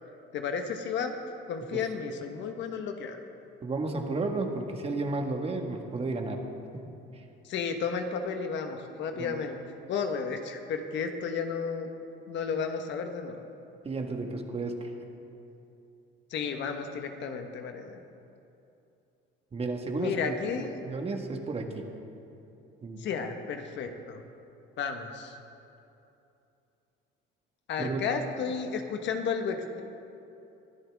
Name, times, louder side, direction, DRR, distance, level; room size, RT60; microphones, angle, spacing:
voice 1, 0.3-1.2 1.5-3.2 7.4-9.6 9.9-11.9 12.3-13.4 16.3-18.0 20.0-20.7 23.0-24.2 24.8-25.4 27.7-29.8, left 6 dB, 60° left, 5 dB, 1.3 m, -33 dB
voice 2, 3.6-6.4 6.7-7.2 9.1-9.4 13.8-14.9 19.5-20.4 20.8-21.9 22.8-23.1 27.8-28.1, right 3 dB, 30° right, 3 dB, 1.6 m, -33 dB
22.0 x 13.0 x 3.6 m, 2.8 s
cardioid pair, 110°, 21 cm